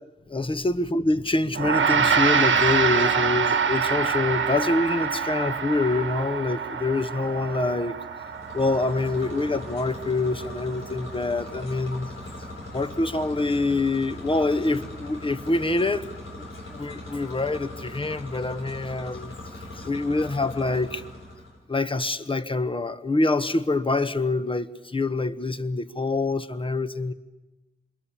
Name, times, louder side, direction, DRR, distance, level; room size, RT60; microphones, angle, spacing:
voice 1, 0.3-8.0 8.5-12.1 12.7-16.4 16.7-19.3 19.7-21.0 21.7-27.1, left 2 dB, 25° left, 11 dB, 1.3 m, -26 dB
Gong, 1.5-11.1, right 6 dB, 70° right, 1.5 m, -25 dB
sound 1, 8.2-21.6, left 1 dB, 90° left, 5.5 m, -40 dB
26.5 x 23.0 x 7.4 m, 1.1 s
cardioid pair, 55°, 21 cm